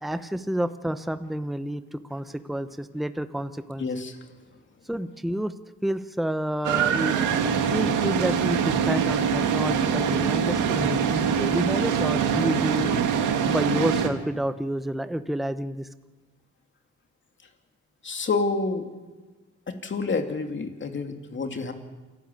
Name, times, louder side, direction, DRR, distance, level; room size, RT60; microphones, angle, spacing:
voice 1, 0.0-3.9 4.9-5.5 5.8-7.2 7.7-13.0 13.5-15.9, right 1 dB, ahead, 11 dB, 0.9 m, -29 dB
voice 2, 3.8-4.2 18.0-18.9 19.7-21.7, left 4 dB, 40° left, 5 dB, 2.7 m, -28 dB
sound 1, 6.6-14.1, right 7 dB, 85° right, 2.1 m, -24 dB
27.5 x 11.5 x 8.5 m, 1.3 s
cardioid pair, 90°, 30 cm